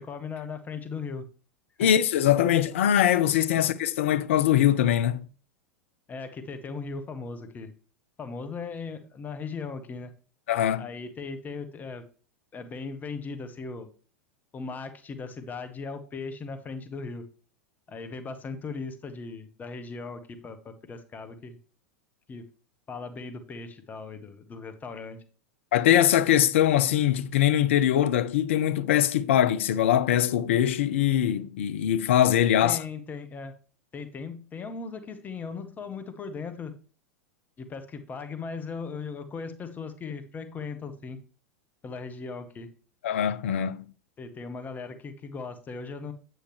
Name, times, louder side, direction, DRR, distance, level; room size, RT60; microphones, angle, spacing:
voice 1, 0.1-1.3 1.8-1.9 6.1-7.7 8.2-10.1 10.8-12.0 12.5-13.9 14.5-17.2 17.9-21.6 22.3-22.4 22.9-25.2 32.6-33.5 33.9-36.8 37.6-41.2 41.8-42.7 44.2-46.1, left 4 dB, 20° left, 0.9 m, -38 dB
voice 2, 1.8-5.2 10.5-10.9 25.7-32.8 43.0-43.9, left 11 dB, 60° left, 0.5 m, -22 dB
8.2 x 7.8 x 3.1 m
figure-of-eight pair, 85°, 8 cm